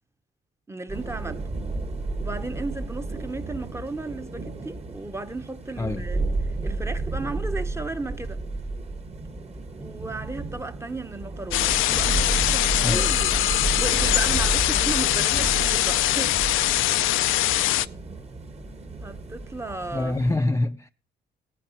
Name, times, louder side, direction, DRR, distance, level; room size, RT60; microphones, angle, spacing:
voice 1, 0.7-1.5 2.2-6.2 6.6-8.4 9.8-16.4 19.0-20.2, right 2 dB, 15° right, 0.8 m, -35 dB
sound 1, 0.9-20.4, right 3 dB, 30° right, 1.3 m, -32 dB
sound 2, 11.5-17.9, left 15 dB, 85° left, 0.5 m, -22 dB
voice 2, 19.9-20.9, left 2 dB, 15° left, 0.5 m, -25 dB
18.0 x 9.3 x 2.9 m
cardioid pair, 90°, 20 cm